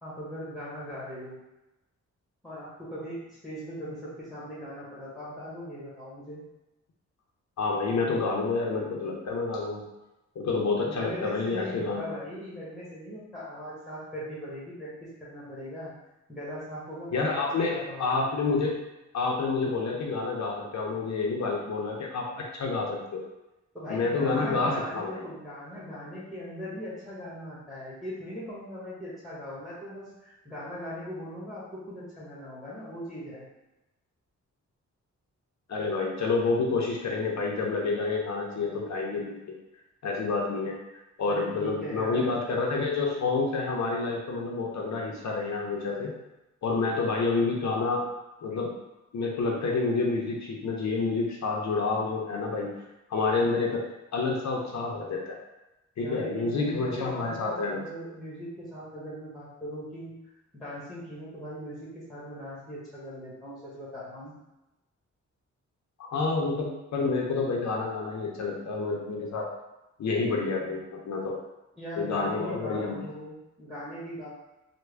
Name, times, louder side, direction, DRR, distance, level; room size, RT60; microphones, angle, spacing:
voice 1, 0.0-1.4 2.4-6.4 10.8-15.9 16.3-18.3 23.7-33.5 41.3-42.3 56.0-60.1 60.5-64.3 71.8-74.3, equal, ahead, -7 dB, 1.2 m, -39 dB
voice 2, 7.6-9.8 10.4-12.1 17.1-18.8 19.1-23.2 23.9-25.2 35.7-39.3 40.0-40.7 41.2-46.1 46.6-48.0 48.4-48.7 49.1-52.7 53.1-53.8 54.1-55.3 56.0-57.8 66.0-69.5 70.0-71.4 72.0-73.0, left 3 dB, 70° left, -1 dB, 0.6 m, -28 dB
3.4 x 2.2 x 3.3 m, 0.98 s
wide cardioid pair, 100°, 29 cm